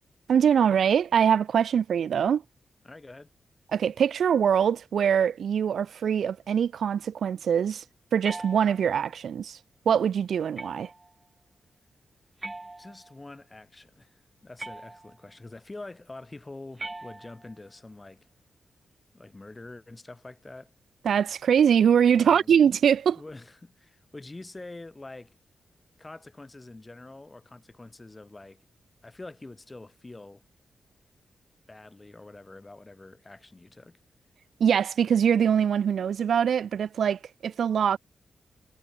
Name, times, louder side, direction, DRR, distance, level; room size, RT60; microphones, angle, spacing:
voice 1, 0.3-2.4 3.7-7.8 8.1-9.6 9.9-10.9 21.0-23.2 34.6-38.0, right 8 dB, 75° right, 0.6 m, -23 dB
voice 2, 2.8-3.3 12.8-18.3 19.1-20.7 22.2-22.6 23.1-25.4 26.0-28.7 29.0-30.4 31.7-34.0, left 2 dB, 20° left, 4.5 m, -45 dB
sound 1, 8.2-9.1 10.6-11.1 12.4-13.3 14.6-15.3 16.8-17.7, right 2 dB, 20° right, 7.3 m, -41 dB
wide cardioid pair, 105°, 0 cm